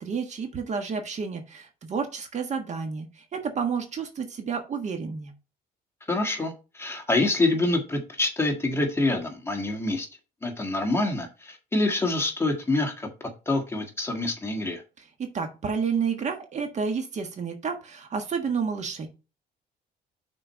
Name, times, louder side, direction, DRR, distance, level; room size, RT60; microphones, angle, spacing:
voice 1, 0.0-5.3 15.2-19.1, right 6 dB, 45° right, 6 dB, 1.5 m, -30 dB
voice 2, 6.1-10.1 10.4-13.1 13.4-14.8, left 2 dB, 15° left, 3 dB, 1.7 m, -26 dB
6.2 x 4.4 x 5.5 m, 0.30 s
cardioid pair, 110°, 17 cm